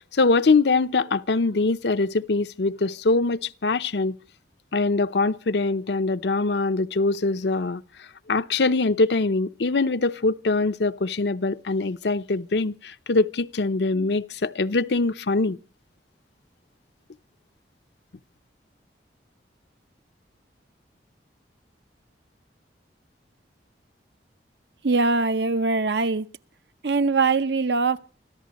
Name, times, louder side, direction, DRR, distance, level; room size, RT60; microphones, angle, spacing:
voice 1, 0.1-4.2 4.7-15.6, left 3 dB, 75° left, 0.7 m, -23 dB
voice 2, 24.8-26.3 26.8-28.0, right 3 dB, 75° right, 0.8 m, -22 dB
26.5 x 14.0 x 3.0 m
head